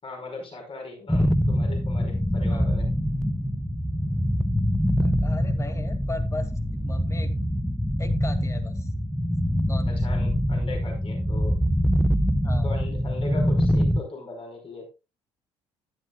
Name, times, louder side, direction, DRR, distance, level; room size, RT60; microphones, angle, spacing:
voice 1, 0.0-2.9 9.9-11.6 12.6-14.9, left 2 dB, 40° left, 2 dB, 5.2 m, -38 dB
sound 1, 1.1-14.0, equal, ahead, 0.7 m, -24 dB
voice 2, 2.5-2.8 5.0-6.5 6.8-7.3 8.0-8.9 9.6-10.1 12.4-12.7, left 2 dB, 20° left, 7 dB, 2.4 m, -38 dB
13.0 x 11.5 x 2.4 m, 0.28 s
figure-of-eight pair, 50°, 15 cm